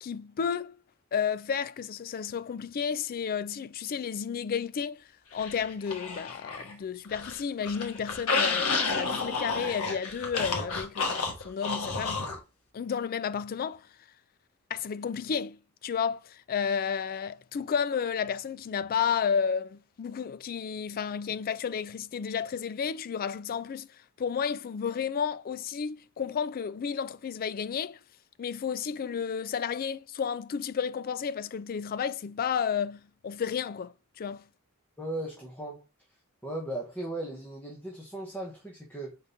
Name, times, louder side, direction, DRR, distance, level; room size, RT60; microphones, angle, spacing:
voice 1, 0.0-0.8 1.1-12.3 12.7-13.9 14.7-23.9 24.2-28.0 28.4-34.5, left 7 dB, 40° left, 0.3 m, -32 dB
sound 1, 5.4-6.7 7.0-12.4, left 4 dB, 75° left, 1.3 m, -31 dB
voice 2, 35.0-35.8 36.4-39.2, right 1 dB, 10° left, 1.1 m, -37 dB
4.9 x 3.9 x 2.6 m
head